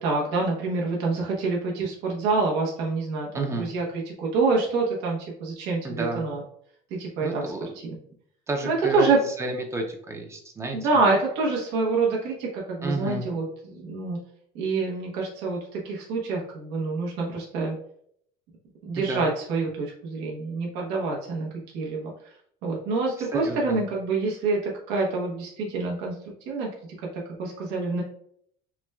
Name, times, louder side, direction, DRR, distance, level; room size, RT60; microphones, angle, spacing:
voice 1, 0.0-6.4 6.9-7.4 8.6-9.2 10.7-14.2 14.5-17.8 18.8-21.5 21.7-22.1 22.6-26.1 26.5-26.7 27.1-28.0, right 3 dB, 80° right, -2 dB, 0.9 m, -26 dB
voice 2, 3.3-3.7 5.8-6.3 7.2-7.7 8.5-9.1 9.4-10.8 12.8-13.3 19.0-19.3 23.3-23.8, right 2 dB, 15° right, 3 dB, 0.5 m, -30 dB
5.8 x 2.2 x 2.3 m, 0.66 s
cardioid pair, 150°, 17 cm